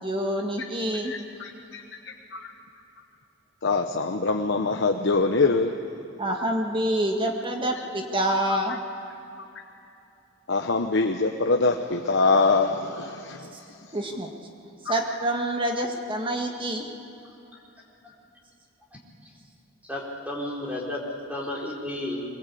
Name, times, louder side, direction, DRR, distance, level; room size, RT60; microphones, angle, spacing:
voice 1, 0.0-1.1 6.2-8.8 13.9-14.3 14.8-16.9, right 1 dB, 25° right, 2 dB, 1.8 m, -27 dB
voice 2, 1.0-1.8 2.3-2.5 3.6-5.7 10.5-13.4, left 3 dB, 60° left, 4 dB, 1.0 m, -24 dB
voice 3, 19.9-21.0 21.3-22.3, left 1 dB, 5° right, -3 dB, 3.9 m, -32 dB
23.5 x 22.0 x 8.5 m, 2.8 s
head